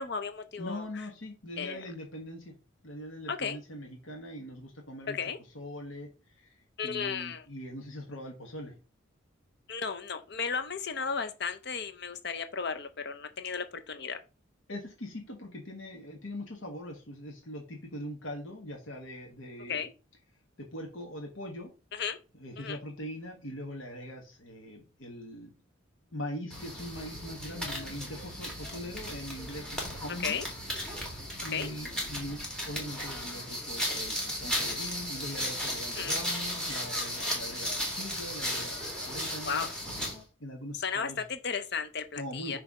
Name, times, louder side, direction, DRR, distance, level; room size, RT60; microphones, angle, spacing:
voice 1, 0.0-0.9 1.6-1.8 3.3-3.6 5.1-5.4 6.8-7.4 9.7-14.2 19.7-19.9 21.9-22.2 22.6-22.8 30.2-30.5 31.5-31.7 35.9-36.1 39.4-39.7 40.7-42.6, left 6 dB, 55° left, 0.7 m, -34 dB
voice 2, 0.6-2.5 2.8-5.2 5.5-6.5 6.8-8.7 14.7-19.8 20.6-21.7 22.4-25.5 26.1-30.4 31.4-38.7 39.0-39.7 40.4-41.2 42.1-42.6, left 1 dB, 75° left, 1.4 m, -41 dB
sound 1, 26.5-40.2, equal, 5° left, 1.8 m, -35 dB
6.1 x 3.3 x 5.3 m
head